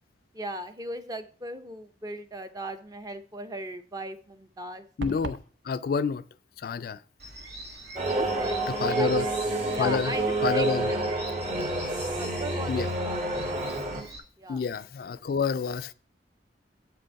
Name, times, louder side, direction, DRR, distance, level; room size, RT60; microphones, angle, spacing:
voice 1, 0.3-4.9 8.1-11.0 12.2-13.7 14.4-14.6, right 1 dB, 20° right, 0.6 m, -38 dB
voice 2, 5.0-6.2 6.6-7.0 8.7-9.3 9.8-10.2 10.4-10.9 12.7-12.9 14.5-15.9, left 5 dB, 55° left, 0.3 m, -28 dB
sound 1, 5.0-5.5, right 3 dB, 85° right, 0.6 m, -35 dB
sound 2, 7.2-14.2, right 1 dB, 65° right, 1.9 m, -43 dB
sound 3, 8.0-14.0, right 2 dB, 45° right, 2.0 m, -29 dB
7.5 x 5.2 x 4.5 m
head